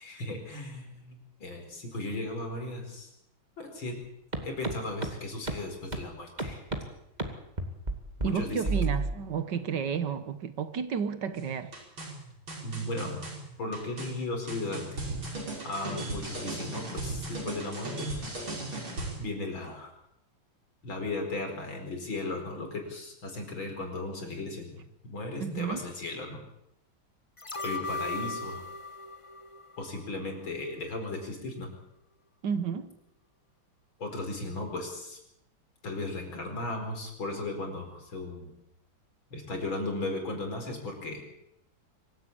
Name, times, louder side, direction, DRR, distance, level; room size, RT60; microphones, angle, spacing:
voice 1, 0.0-3.1 3.6-3.9 4.4-6.6 8.2-8.8 12.6-13.2 13.6-15.0 15.6-18.1 19.2-19.9 20.8-24.8 25.1-26.4 27.6-28.6 29.8-31.7 34.0-35.2 35.8-38.5 39.3-41.2, left 2 dB, 75° left, 5.5 m, -36 dB
sound 1, 4.3-4.4 4.6-4.7 5.0-5.1 5.5-5.6 5.9-6.0 6.4-6.8 7.2-7.3 7.6-7.9 8.2-8.3 8.7-9.1, right 3 dB, 20° right, 2.4 m, -29 dB
voice 2, 8.2-11.7 25.4-25.9 32.4-32.9, right 7 dB, 60° right, 1.8 m, -31 dB
sound 2, 11.4-19.2, right 2 dB, 80° right, 6.2 m, -37 dB
sound 3, 27.4-30.5 30.9-31.0, left 3 dB, 20° left, 1.2 m, -38 dB
24.5 x 15.5 x 8.7 m
omnidirectional pair, 2.2 m